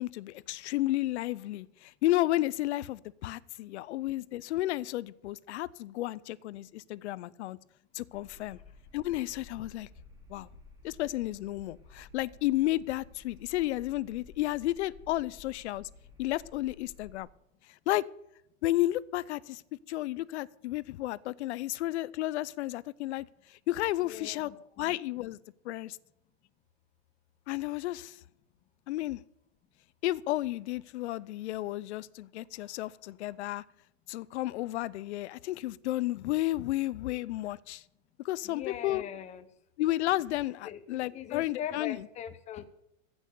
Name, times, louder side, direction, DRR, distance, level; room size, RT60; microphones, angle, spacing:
voice 1, 0.0-7.6 7.9-8.6 8.9-9.9 10.3-10.5 10.8-15.9 16.2-17.3 17.9-18.0 18.6-19.6 19.9-24.5 24.8-25.4 25.6-26.0 27.5-28.2 28.9-29.2 30.0-33.6 34.1-37.8 38.2-39.0 39.8-42.1, left 16 dB, 60° left, 21 dB, 0.6 m, -32 dB
sound 1, 8.1-17.2, left 3 dB, 10° right, 2.7 m, -54 dB
voice 2, 24.0-24.7 38.4-39.5 40.6-42.7, left 10 dB, 20° left, 13 dB, 0.7 m, -40 dB
15.0 x 6.3 x 6.7 m, 0.83 s
hypercardioid pair, 140°, 39 cm